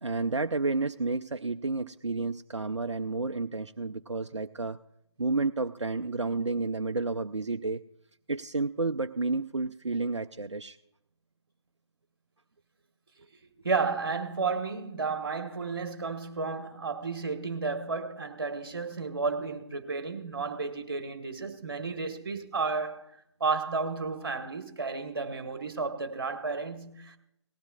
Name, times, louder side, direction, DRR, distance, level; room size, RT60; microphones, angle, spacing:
voice 1, 0.0-4.8 5.2-7.8 8.3-10.8, right 3 dB, 85° right, 0.4 m, -31 dB
voice 2, 13.6-23.1 23.4-27.2, right 4 dB, 50° right, 1.5 m, -32 dB
19.0 x 15.5 x 2.4 m
figure-of-eight pair, 145°, 15 cm